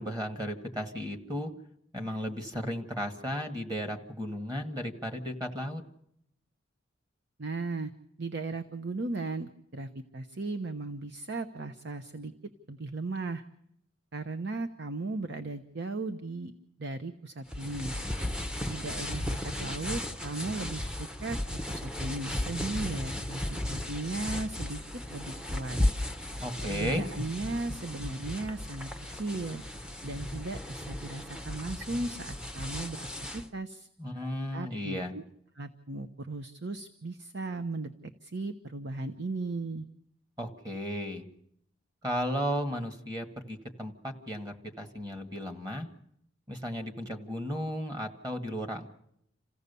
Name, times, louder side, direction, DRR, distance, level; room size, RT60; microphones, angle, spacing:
voice 1, 0.0-1.5 1.9-5.8 22.4-22.5 26.4-27.1 34.0-35.1 40.4-41.2 42.0-45.9 46.5-48.9, equal, 20° right, 6 dB, 1.7 m, -35 dB
voice 2, 7.4-7.9 8.2-12.3 12.7-13.4 14.1-16.5 16.8-17.9 18.7-21.4 21.7-23.4 23.7-24.8 25.1-25.8 26.6-29.6 30.0-33.9 34.5-35.2 35.6-39.9, right 2 dB, 60° right, 8 dB, 0.9 m, -36 dB
sound 1, 17.5-33.5, left 1 dB, 5° right, 0.8 m, -35 dB
27.5 x 16.0 x 6.9 m, 0.74 s
head